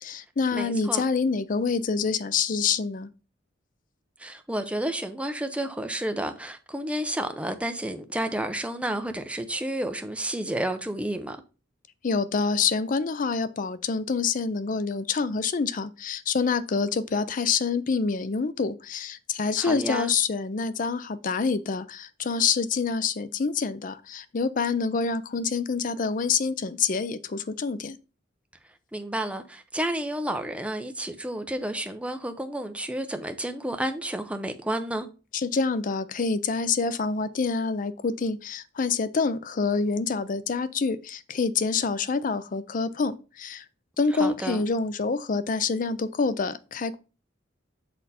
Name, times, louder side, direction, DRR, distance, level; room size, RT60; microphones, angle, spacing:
voice 1, 0.0-3.1 12.0-28.0 35.3-43.6 44.0-47.0, left 5 dB, 45° left, 0.5 m, -27 dB
voice 2, 0.5-1.0 4.2-11.4 19.6-20.1 28.9-35.1 44.1-44.6, right 1 dB, 5° right, 0.7 m, -31 dB
6.7 x 4.3 x 4.2 m
head